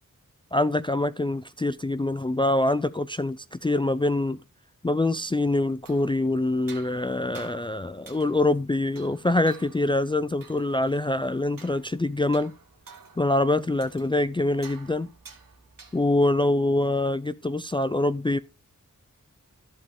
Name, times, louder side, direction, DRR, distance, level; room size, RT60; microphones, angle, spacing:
voice 1, 0.5-4.4 4.8-12.5 13.2-15.1 15.9-18.4, left 2 dB, 15° left, 0.4 m, -25 dB
sound 1, 5.7-16.3, right 5 dB, 85° right, 1.6 m, -51 dB
14.0 x 5.3 x 3.6 m
wide cardioid pair, 55°, 33 cm